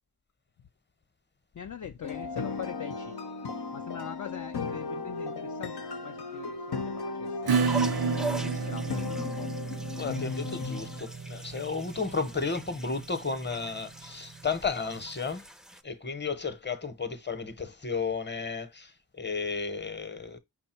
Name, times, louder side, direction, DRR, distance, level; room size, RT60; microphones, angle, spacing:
voice 1, 1.5-3.2 3.7-7.5 8.3-9.5, left 8 dB, 50° left, 0.4 m, -43 dB
sound 1, 2.0-11.0, left 4 dB, 85° left, 0.8 m, -36 dB
sound 2, 7.5-15.8, right 2 dB, ahead, 0.4 m, -42 dB
Acoustic guitar / Strum, 7.5-14.7, right 5 dB, 70° right, 0.6 m, -32 dB
voice 2, 9.9-15.4 15.8-20.4, left 4 dB, 30° left, 0.9 m, -33 dB
5.5 x 2.2 x 4.3 m
cardioid pair, 45°, 38 cm